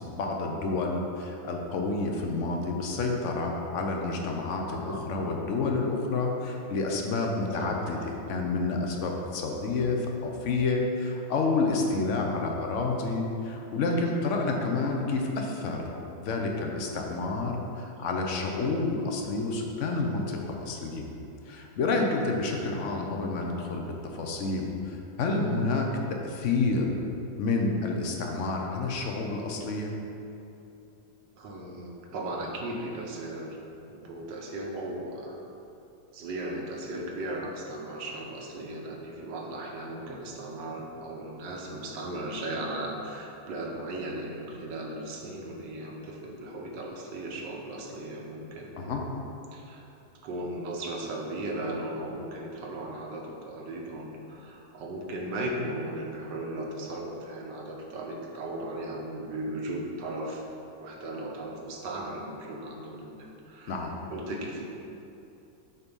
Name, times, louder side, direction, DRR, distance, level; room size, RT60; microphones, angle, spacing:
voice 1, 0.1-15.8 16.2-21.1 21.5-23.9 24.1-26.9 27.4-29.9 48.8-49.0 63.7-63.9, left 3 dB, 55° left, 1 dB, 1.0 m, -29 dB
voice 2, 4.6-5.0 7.6-7.8 18.0-18.1 31.4-33.6 33.9-35.4 36.1-49.0 49.5-49.8 50.2-60.4 60.8-64.7, right 1 dB, 90° right, 0 dB, 1.6 m, -37 dB
8.1 x 4.1 x 5.3 m, 2.8 s
omnidirectional pair, 1.9 m